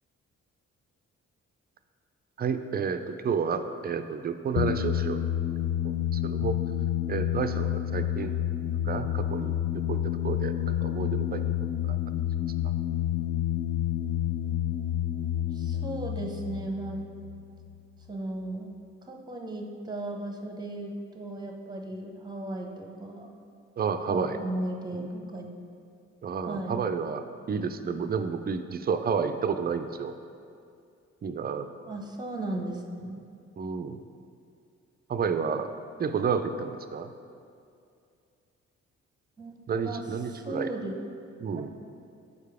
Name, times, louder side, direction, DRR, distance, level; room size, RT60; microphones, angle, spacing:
voice 1, 2.4-5.2 5.8-6.6 7.1-8.3 8.8-11.4 11.8-12.0 23.8-24.4 24.9-25.0 26.2-30.1 31.2-31.7 33.6-34.0 35.1-35.7 36.0-37.1 39.7-40.7 41.4-41.7, right 6 dB, 30° right, 9 dB, 0.4 m, -31 dB
sound 1, 4.6-17.8, left 11 dB, 55° left, 0.4 m, -29 dB
voice 2, 15.5-17.0 18.1-18.7 19.1-23.3 24.1-25.5 26.5-26.9 31.9-33.2 39.4-39.5 39.8-40.1 40.3-41.0, right 1 dB, 10° right, 2 dB, 0.9 m, -36 dB
6.5 x 4.6 x 3.5 m, 2.4 s
hypercardioid pair, 40°, 34 cm